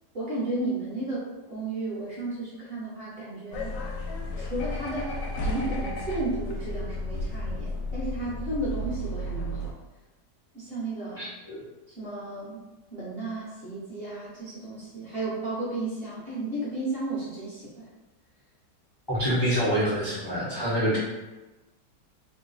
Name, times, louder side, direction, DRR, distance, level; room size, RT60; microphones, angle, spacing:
voice 1, 0.1-3.7 4.4-9.7 10.5-11.2 12.0-12.6 12.9-17.9, right 2 dB, 40° right, -9 dB, 1.1 m, -33 dB
sound 1, 3.5-9.7, left 1 dB, 85° left, 1.2 m, -33 dB
voice 2, 11.2-11.6 19.1-21.0, equal, 25° left, -10 dB, 0.5 m, -26 dB
3.1 x 2.2 x 3.9 m, 1.1 s
omnidirectional pair, 1.9 m